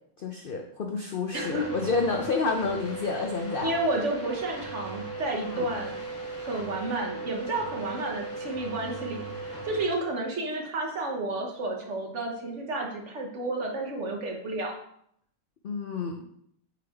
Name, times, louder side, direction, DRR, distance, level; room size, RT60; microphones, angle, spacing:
voice 1, 0.2-3.7 5.3-5.7 15.6-16.2, left 4 dB, 60° left, 3 dB, 0.5 m, -29 dB
sound 1, 1.3-9.9, right 3 dB, 10° left, 1.0 m, -37 dB
voice 2, 1.3-1.7 3.6-6.0 6.4-14.7, right 2 dB, 55° right, 1 dB, 1.3 m, -31 dB
8.4 x 3.4 x 3.5 m, 0.70 s
omnidirectional pair, 1.6 m